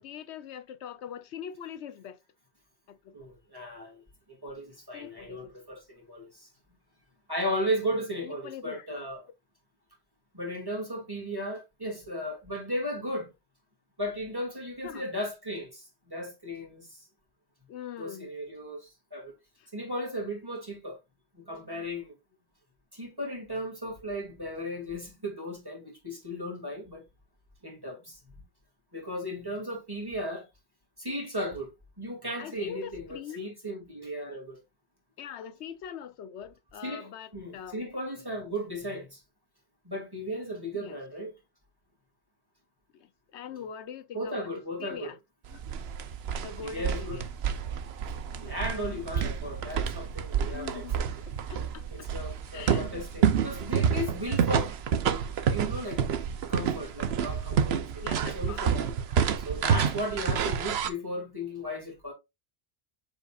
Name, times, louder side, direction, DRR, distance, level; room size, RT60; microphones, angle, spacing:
voice 1, 0.0-2.2 2.9-3.1 4.9-5.5 8.2-8.9 14.8-15.1 17.7-18.3 32.4-33.5 35.2-37.9 40.7-41.0 42.9-45.2 45.5-45.6 46.4-47.3 48.7-49.0 50.5-50.9 51.3-52.1 52.5-53.1 58.0-58.6, left 8 dB, 80° left, 1.0 m, -42 dB
voice 2, 3.1-4.0 4.3-6.5 7.3-9.3 10.3-13.3 14.0-17.1 18.0-19.4 19.7-21.0 21.3-22.2 22.9-27.0 27.6-28.2 28.9-30.5 31.0-34.6 36.8-39.2 39.8-41.3 43.5-43.6 44.1-45.1 46.6-47.2 48.4-51.1 51.9-54.8 55.1-56.0 56.5-58.9 59.4-62.1, equal, 20° right, 2.6 m, -36 dB
sound 1, 45.5-60.9, right 7 dB, 70° right, 1.0 m, -29 dB
7.1 x 5.4 x 2.4 m
omnidirectional pair, 1.1 m